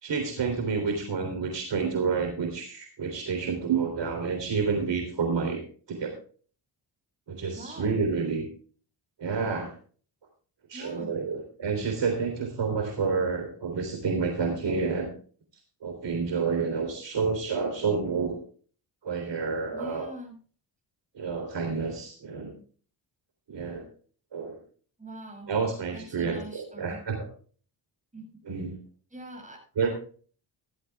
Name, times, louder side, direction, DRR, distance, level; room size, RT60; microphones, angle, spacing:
voice 1, 0.0-5.6 5.9-6.1 7.3-8.5 9.2-9.7 10.7-15.1 15.8-18.4 19.0-20.1 21.2-22.5 23.5-23.9 24.3-24.6 25.5-27.3 28.5-28.7 29.8-29.9, right 5 dB, 60° right, 3 dB, 3.5 m, -29 dB
voice 2, 7.6-8.0 10.7-11.1 19.7-20.4 25.0-25.5 25.9-27.0 28.1-28.3 29.1-29.9, right 1 dB, 15° right, 0 dB, 7.6 m, -43 dB
16.0 x 13.0 x 2.4 m, 0.43 s
cardioid pair, 80°, 47 cm